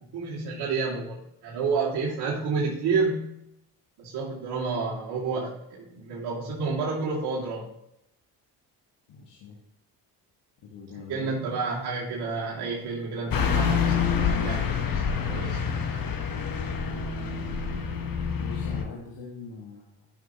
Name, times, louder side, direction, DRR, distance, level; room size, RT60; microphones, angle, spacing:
voice 1, 0.1-3.3 4.0-7.7 11.1-15.6, right 4 dB, 65° right, -6 dB, 2.5 m, -30 dB
voice 2, 9.1-9.6 10.6-11.3 17.3-18.1 18.3-20.1, left 4 dB, 70° left, -2 dB, 1.9 m, -43 dB
Car passing by / Truck, 13.3-18.8, left 6 dB, 50° left, 1.3 m, -27 dB
12.5 x 6.0 x 3.0 m, 0.79 s
supercardioid pair, 65°, 43 cm